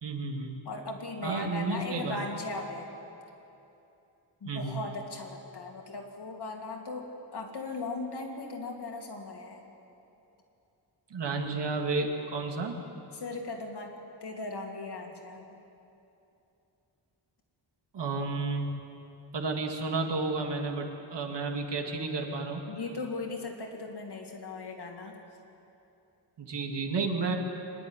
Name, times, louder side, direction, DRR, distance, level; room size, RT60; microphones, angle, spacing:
voice 1, 0.0-0.6 1.2-2.2 4.5-4.8 11.1-12.8 17.9-18.7 19.3-22.7 26.4-27.3, right 3 dB, 70° right, 3 dB, 2.1 m, -31 dB
voice 2, 0.6-2.9 4.4-9.6 13.1-13.9 14.2-15.6 22.7-25.2, left 3 dB, 60° left, 2 dB, 2.5 m, -38 dB
24.5 x 11.0 x 9.7 m, 2.8 s
wide cardioid pair, 175°, 45 cm